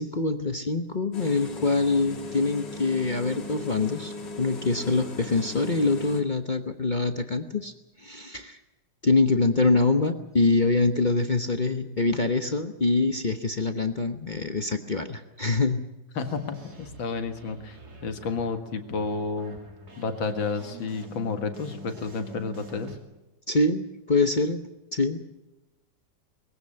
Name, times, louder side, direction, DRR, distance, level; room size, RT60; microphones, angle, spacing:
voice 1, 0.0-7.7 8.0-8.6 9.0-15.8 23.5-24.6 24.9-25.2, left 3 dB, 35° left, 7 dB, 0.8 m, -25 dB
sound 1, 1.1-6.2, left 3 dB, 65° left, 2.9 m, -38 dB
voice 2, 16.2-19.6 20.0-22.9, left 4 dB, 90° left, 7 dB, 2.5 m, -31 dB
sound 2, 16.3-23.0, right 1 dB, 55° right, 3.4 m, -46 dB
21.5 x 16.0 x 8.7 m, 1.0 s
omnidirectional pair, 2.1 m